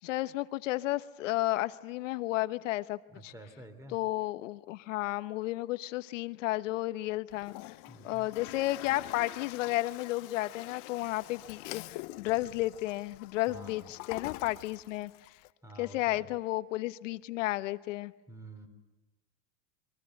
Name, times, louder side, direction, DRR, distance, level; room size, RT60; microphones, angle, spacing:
voice 1, 0.0-3.3 3.9-7.7 8.0-15.1 15.8-18.1, left 17 dB, 80° left, 13 dB, 1.2 m, -33 dB
voice 2, 3.1-4.0 7.9-8.3 13.5-13.9 15.6-16.2 18.3-18.7, right 1 dB, 10° right, 9 dB, 3.4 m, -49 dB
Toilet flush, 7.3-15.5, left 21 dB, 50° left, 0.9 m, -46 dB
28.0 x 23.5 x 7.9 m, 1.2 s
supercardioid pair, 150°, 37 cm